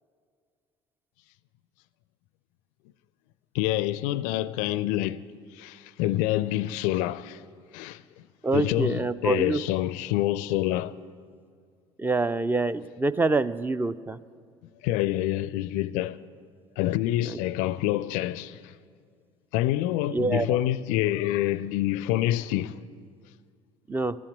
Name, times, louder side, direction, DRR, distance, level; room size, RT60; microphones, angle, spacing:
voice 1, 3.5-5.2 5.5-7.4 7.7-8.0 8.5-10.9 14.8-16.2 16.8-18.7 19.5-22.7, left 14 dB, 60° left, 0.4 m, -27 dB
voice 2, 8.4-9.6 12.0-14.2 17.3-17.4 20.1-20.5 23.9-24.1, right 3 dB, 15° right, 0.4 m, -26 dB
11.5 x 8.5 x 9.3 m
figure-of-eight pair, 55°, 15 cm